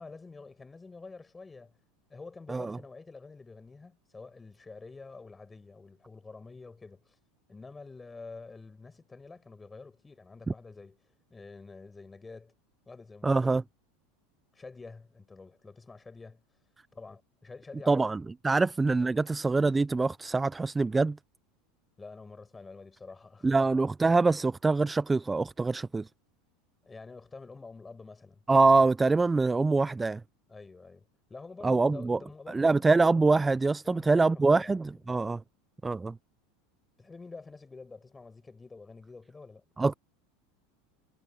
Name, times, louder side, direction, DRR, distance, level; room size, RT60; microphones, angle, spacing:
voice 1, 0.0-1.7 2.1-7.2 7.5-11.0 11.3-12.5 12.9-13.7 14.5-16.4 16.9-18.0 22.0-23.6 26.8-28.4 30.5-32.8 33.8-34.8 37.0-39.6, left 3 dB, 15° left, 6.3 m, -48 dB
voice 2, 13.2-13.6 17.9-21.2 23.4-26.1 28.5-30.2 31.6-32.2 32.5-35.4 35.8-36.2 39.8-39.9, right 3 dB, 10° right, 0.3 m, -24 dB
supercardioid pair, 130°, 0 cm